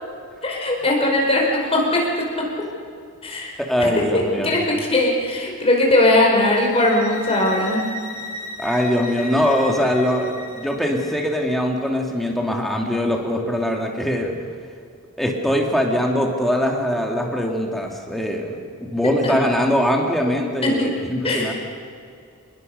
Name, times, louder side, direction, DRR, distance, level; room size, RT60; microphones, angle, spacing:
voice 1, 0.4-2.1 2.4-2.5 3.2-3.5 3.8-3.9 4.4-7.8 19.2-19.3 20.6-20.9 21.2-21.5, left 1 dB, 25° left, -1 dB, 5.4 m, -19 dB
voice 2, 3.6-4.6 8.6-14.3 15.2-21.5, equal, ahead, 0 dB, 2.5 m, -22 dB
sound 1, 6.5-11.4, left 1 dB, 90° left, 4.3 m, -35 dB
27.5 x 20.5 x 6.7 m, 2.3 s
head